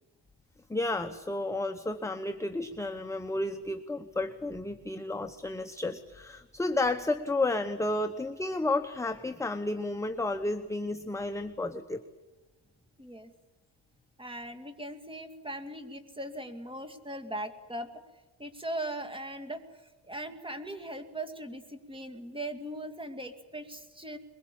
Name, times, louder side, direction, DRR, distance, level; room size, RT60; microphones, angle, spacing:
voice 1, 0.7-12.0, left 2 dB, 5° left, 7 dB, 0.9 m, -32 dB
voice 2, 13.0-13.3 14.2-17.9 18.4-19.6 20.1-24.2, right 1 dB, 10° right, 7 dB, 2.4 m, -39 dB
22.5 x 22.0 x 8.6 m, 1.2 s
cardioid pair, 100°, 47 cm